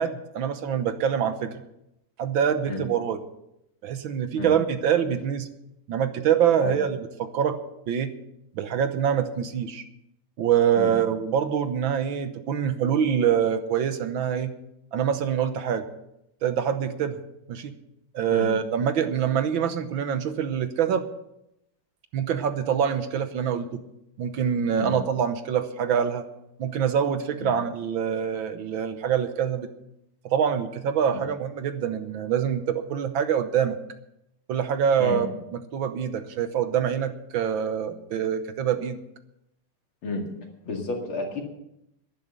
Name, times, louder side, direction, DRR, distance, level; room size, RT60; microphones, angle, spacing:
voice 1, 0.0-1.6 2.2-3.2 3.8-5.5 5.9-7.6 7.9-8.1 8.6-9.8 10.4-14.5 14.9-15.8 16.4-17.2 17.5-17.7 18.1-21.0 22.1-23.8 24.2-26.2 26.6-29.7 30.2-33.8 34.5-35.3 35.7-39.0, right 8 dB, 65° right, 9 dB, 1.6 m, -25 dB
voice 2, 40.6-41.4, left 3 dB, 70° left, 2 dB, 3.0 m, -31 dB
11.5 x 11.0 x 6.7 m, 0.84 s
omnidirectional pair, 2.4 m